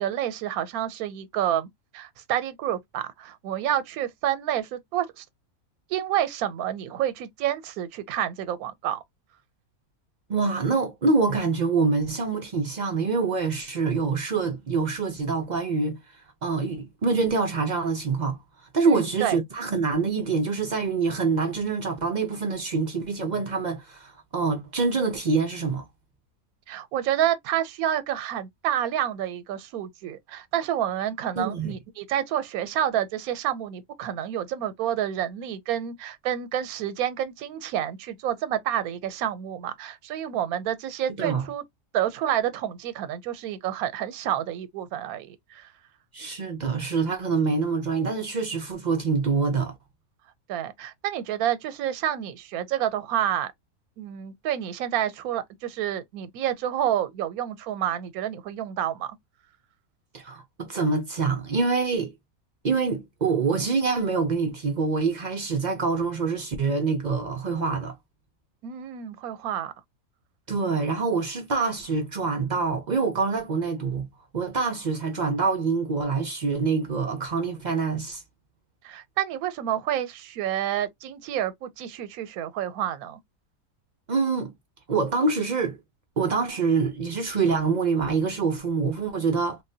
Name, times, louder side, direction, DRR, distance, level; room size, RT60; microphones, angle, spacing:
voice 1, 0.0-1.7 1.9-5.2 5.9-9.0 18.9-19.4 26.7-41.6 41.9-45.7 50.5-53.5 54.0-59.2 68.6-69.7 78.8-83.2, right 11 dB, 85° right, 1.0 m, -29 dB
voice 2, 10.3-16.0 16.4-18.4 18.7-25.9 31.4-31.8 41.2-41.5 46.1-49.8 60.1-62.1 62.6-68.0 70.5-74.1 74.3-78.2 84.1-84.5 84.9-85.8 86.2-89.6, right 4 dB, 65° right, 0.4 m, -25 dB
3.4 x 2.1 x 2.6 m
omnidirectional pair, 1.5 m